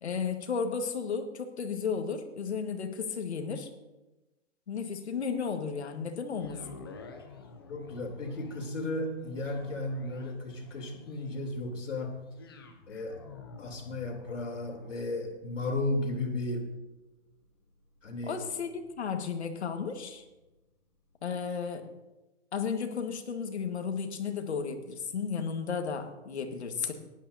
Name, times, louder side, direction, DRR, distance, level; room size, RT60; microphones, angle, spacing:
voice 1, 0.0-3.7 4.7-6.8 18.3-20.2 21.2-21.9 22.5-26.9, left 6 dB, 65° left, 6 dB, 1.8 m, -34 dB
sound 1, 6.3-20.5 21.1-21.2, left 4 dB, 20° left, 0.7 m, -52 dB
voice 2, 7.7-12.1 12.9-13.2 13.6-16.7 18.0-18.4, left 2 dB, 85° left, 2 dB, 3.5 m, -34 dB
19.0 x 11.0 x 2.8 m, 1.1 s
hypercardioid pair, 175°, 36 cm